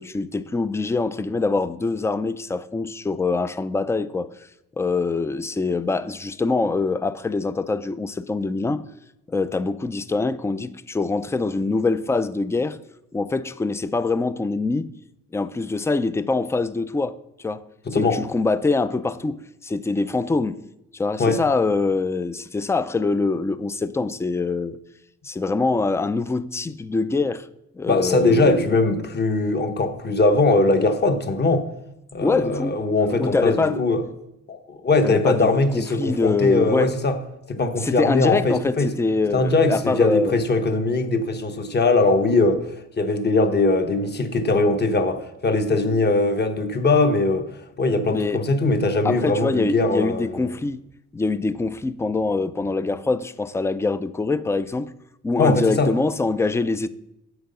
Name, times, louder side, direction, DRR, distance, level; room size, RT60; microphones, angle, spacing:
voice 1, 0.0-4.3 4.8-8.8 9.3-12.8 13.1-14.9 15.3-17.2 17.4-17.6 17.9-20.6 20.9-24.8 25.2-27.5 27.7-28.7 32.2-32.8 33.1-33.8 35.0-36.9 37.8-40.4 48.1-48.4 49.0-50.8 51.1-54.9 55.2-56.9, left 3 dB, 10° left, 0.4 m, -24 dB
voice 2, 17.8-18.2 21.2-21.4 27.9-31.7 32.1-34.0 34.5-37.2 37.5-38.9 39.3-50.6 55.4-55.9, left 2 dB, 35° left, 1.1 m, -21 dB
8.0 x 5.6 x 5.4 m
cardioid pair, 90°, 30 cm